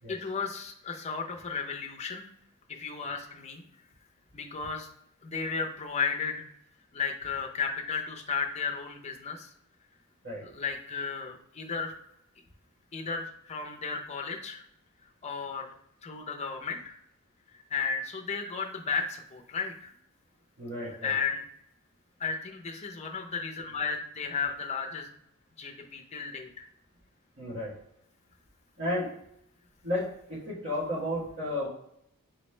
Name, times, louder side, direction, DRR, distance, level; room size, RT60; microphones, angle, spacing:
voice 1, 0.1-2.3 2.7-3.6 4.3-4.9 5.2-6.5 6.9-9.5 10.4-11.9 12.9-14.6 15.2-15.7 16.0-17.0 17.5-19.9 21.0-21.4 22.2-25.1 25.6-26.7, left 5 dB, 30° left, 2 dB, 0.5 m, -34 dB
voice 2, 20.6-21.1 27.4-27.7 28.8-29.1 29.8-31.7, left 1 dB, 55° right, -8 dB, 1.2 m, -33 dB
4.4 x 3.1 x 3.2 m, 0.73 s
head